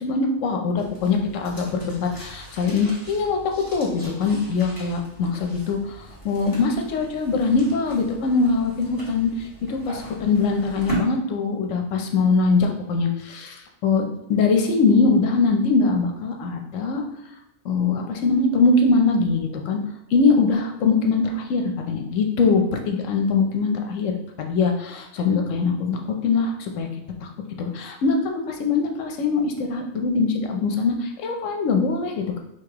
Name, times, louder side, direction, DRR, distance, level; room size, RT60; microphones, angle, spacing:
voice 1, 0.0-3.4 3.7-6.0 6.2-14.0 14.3-17.0 17.6-19.8 20.1-26.9 27.2-27.3 27.6-32.4, left 4 dB, 80° left, 3 dB, 1.0 m, -22 dB
sound 1, 0.8-11.0, right 2 dB, 15° left, 1.5 m, -39 dB
5.1 x 2.9 x 2.9 m, 0.84 s
omnidirectional pair, 1.3 m